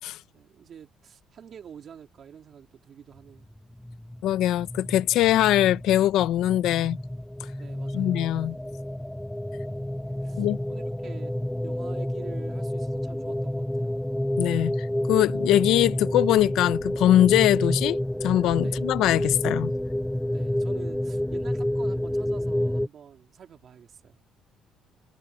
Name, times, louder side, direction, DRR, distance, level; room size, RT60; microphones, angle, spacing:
voice 1, 0.3-3.5 7.6-8.3 9.7-9.9 10.2-11.4 11.6-14.0 18.6-18.8 20.3-24.2, right 8 dB, 50° right, 3.4 m, -47 dB
sound 1, 3.5-22.9, left 1 dB, 5° left, 0.5 m, -29 dB
voice 2, 4.2-7.0 7.9-8.5 10.4-10.6 14.4-19.7, left 13 dB, 80° left, 0.8 m, -22 dB
cardioid pair, 125°, 0 cm